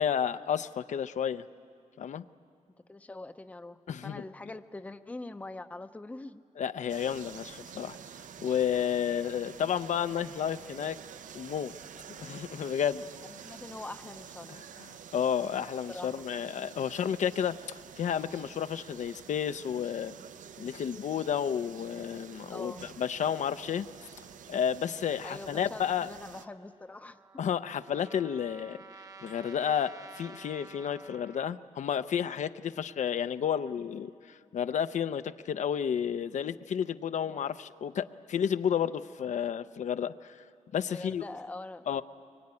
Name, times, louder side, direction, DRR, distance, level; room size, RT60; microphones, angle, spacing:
voice 1, 0.0-1.4 2.0-2.2 3.9-4.2 6.6-8.0 8.4-11.0 11.3-11.7 12.2-13.0 14.5-14.6 15.1-20.1 20.6-23.9 24.5-26.1 27.4-28.8 29.2-34.1 34.5-40.4 40.7-41.2 41.9-42.0, left 8 dB, 65° left, 11 dB, 0.6 m, -31 dB
voice 2, 2.9-6.4 9.0-9.2 13.2-14.6 15.9-16.2 22.5-22.9 25.2-27.2 37.3-37.5 40.9-41.9, left 2 dB, 10° left, 9 dB, 0.6 m, -43 dB
sound 1, 6.9-26.4, right 8 dB, 80° right, 0.6 m, -49 dB
Trumpet, 26.9-31.6, right 4 dB, 30° right, 0.9 m, -51 dB
23.5 x 22.0 x 9.7 m, 2.3 s
wide cardioid pair, 170°, 13 cm